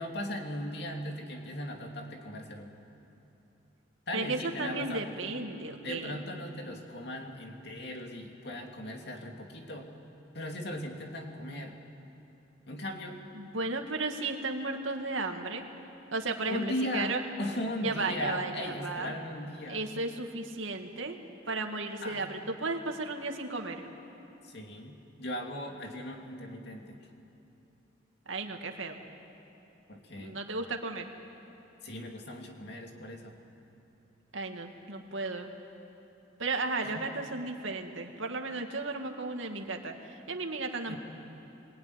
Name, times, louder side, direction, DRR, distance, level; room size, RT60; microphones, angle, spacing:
voice 1, 0.0-2.7 4.1-5.2 5.8-9.9 10.3-11.8 12.7-13.2 16.5-19.8 22.0-22.4 24.4-27.1 29.9-30.4 31.8-33.4 36.9-37.1 40.9-41.0, left 1 dB, 60° left, 2 dB, 2.8 m, -38 dB
voice 2, 4.1-6.2 13.3-15.7 16.1-17.2 17.8-19.1 19.7-21.2 21.5-23.9 28.3-29.0 30.2-31.1 34.3-35.5 36.4-41.0, right 3 dB, 85° right, 4 dB, 2.2 m, -34 dB
26.0 x 21.0 x 9.9 m, 3.0 s
head